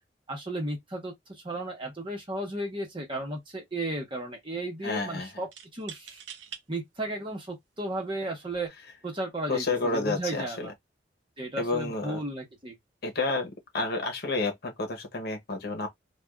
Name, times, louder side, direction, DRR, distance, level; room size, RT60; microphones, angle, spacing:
voice 1, 0.3-6.2 6.7-8.7 9.0-10.7 11.4-12.7, right 1 dB, 30° right, 1.1 m, -34 dB
sound 1, 2.4-2.6 2.9-3.6 5.5-6.6 7.4-7.5 8.4-8.7, right 8 dB, 80° right, 0.6 m, -45 dB
voice 2, 4.8-5.3 9.5-10.7 11.6-12.2 13.0-15.9, left 3 dB, 60° left, 0.9 m, -30 dB
3.4 x 2.4 x 2.4 m
head